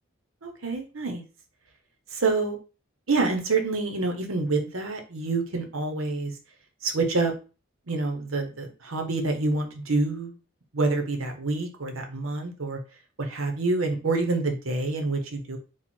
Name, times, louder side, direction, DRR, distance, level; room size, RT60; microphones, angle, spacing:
voice 1, 0.4-1.2 2.1-2.6 3.1-6.3 6.8-7.3 7.9-10.3 10.7-12.8 13.2-15.6, right 3 dB, 80° right, 5 dB, 1.0 m, -27 dB
4.5 x 2.4 x 4.4 m, 0.34 s
head